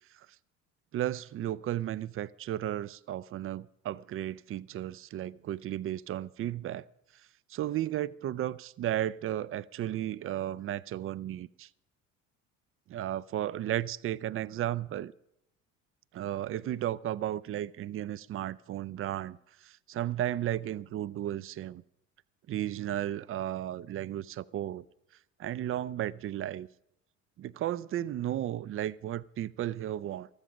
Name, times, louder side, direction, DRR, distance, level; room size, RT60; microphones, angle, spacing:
voice 1, 0.9-6.9 7.5-11.7 12.9-15.1 16.1-21.8 22.5-24.8 25.4-26.7 27.4-30.3, right 12 dB, 35° right, 0.5 m, -34 dB
13.5 x 13.5 x 5.1 m
hypercardioid pair, 65°, 40 cm